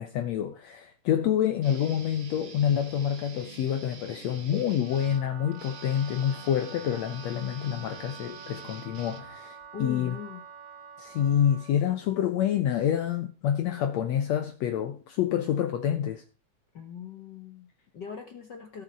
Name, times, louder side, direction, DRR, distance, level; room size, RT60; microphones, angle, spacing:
voice 1, 0.0-10.2 11.0-16.2, left 9 dB, 70° left, 1.9 m, -27 dB
Guitar, 1.6-9.7, right 4 dB, 45° right, 2.0 m, -47 dB
Wind instrument woodwind instrument, 4.8-11.8, right 7 dB, 60° right, 1.7 m, -47 dB
voice 2, 9.7-10.4 16.7-18.8, left 6 dB, 55° left, 1.3 m, -41 dB
16.5 x 6.8 x 4.7 m
omnidirectional pair, 3.5 m